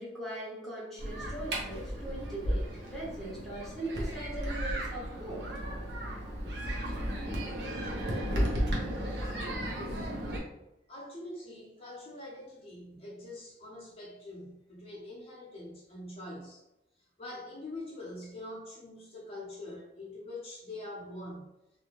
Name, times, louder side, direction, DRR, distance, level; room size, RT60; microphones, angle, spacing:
voice 1, 0.0-5.4, right 1 dB, ahead, -7 dB, 0.8 m, -40 dB
sound 1, 1.0-10.4, equal, 75° right, 0.7 m, -34 dB
voice 2, 10.9-16.6 17.2-21.5, left 1 dB, 35° left, -5 dB, 0.7 m, -44 dB
2.4 x 2.1 x 3.0 m, 0.89 s
head